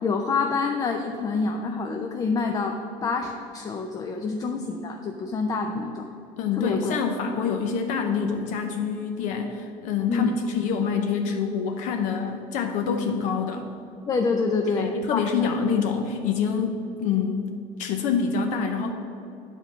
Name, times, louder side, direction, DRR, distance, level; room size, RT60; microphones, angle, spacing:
voice 1, 0.0-6.0 6.6-7.0 10.1-10.3 14.0-15.5, left 4 dB, 25° left, 4 dB, 0.5 m, -27 dB
voice 2, 6.4-13.7 14.7-17.5 17.8-18.9, left 6 dB, 65° left, 5 dB, 0.7 m, -26 dB
8.7 x 4.6 x 6.9 m, 2.6 s
cardioid pair, 145°, 14 cm